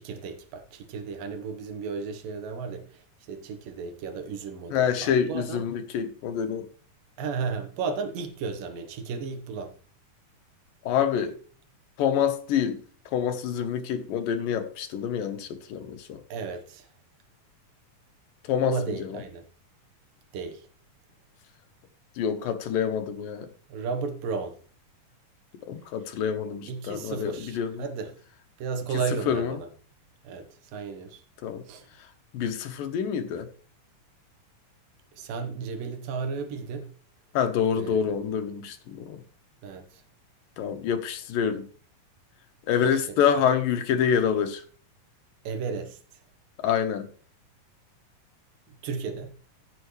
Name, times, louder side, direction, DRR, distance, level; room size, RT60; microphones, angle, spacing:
voice 1, 0.0-5.6 7.2-9.7 16.3-16.9 18.6-19.4 20.3-20.7 23.7-24.6 26.7-28.1 28.6-29.7 30.2-31.2 31.7-31.9 35.1-36.9 37.8-38.1 39.6-40.0 42.8-43.2 45.4-46.0 48.8-49.3, right 5 dB, 80° right, 3.0 m, -34 dB
voice 2, 4.7-6.7 10.9-11.3 12.0-12.8 13.1-16.2 18.5-19.2 22.2-23.5 25.7-27.7 29.3-29.5 31.4-31.6 32.3-33.5 37.3-39.2 40.6-41.7 42.7-44.6 46.6-47.1, left 8 dB, 85° left, 2.9 m, -26 dB
16.0 x 7.7 x 3.2 m
omnidirectional pair, 3.9 m